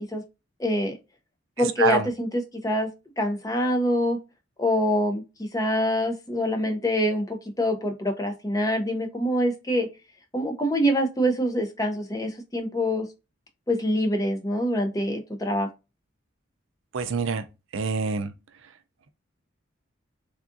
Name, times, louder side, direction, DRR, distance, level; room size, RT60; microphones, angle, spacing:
voice 1, 0.6-0.9 1.6-2.9 3.2-4.2 4.6-9.9 10.3-13.1 13.7-15.7, equal, 15° left, 0.5 m, -25 dB
voice 2, 1.6-2.1 16.9-17.4 17.7-18.3, right 5 dB, 75° right, 0.4 m, -25 dB
3.6 x 2.4 x 2.5 m
head